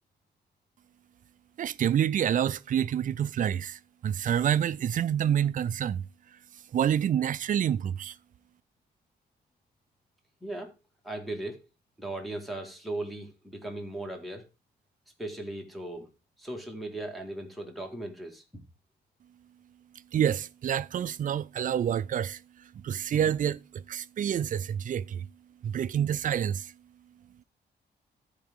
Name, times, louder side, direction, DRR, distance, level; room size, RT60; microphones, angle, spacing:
voice 1, 1.6-6.0 6.7-8.1 20.1-22.4 22.8-25.3 25.6-26.7, right 9 dB, 50° right, 0.4 m, -28 dB
voice 2, 10.4-10.7 11.0-11.6 12.0-14.5 15.2-16.1 16.4-18.6, right 1 dB, ahead, 1.9 m, -37 dB
13.5 x 4.9 x 3.6 m
wide cardioid pair, 135°, 17 cm